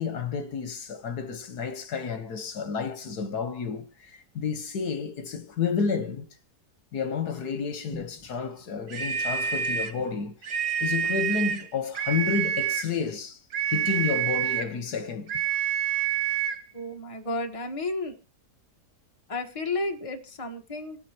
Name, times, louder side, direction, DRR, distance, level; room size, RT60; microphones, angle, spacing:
voice 1, 0.0-6.3 6.9-10.5 10.8-13.4 13.7-15.3, left 6 dB, 75° left, 1.8 m, -30 dB
sound 1, 8.9-10.0 10.4-11.7 11.9-12.9 13.5-14.7 15.3-16.6, right 9 dB, 75° right, 1.8 m, -27 dB
voice 2, 16.7-18.1 19.3-21.0, left 2 dB, 20° left, 1.4 m, -32 dB
27.0 x 9.2 x 2.9 m
omnidirectional pair, 1.7 m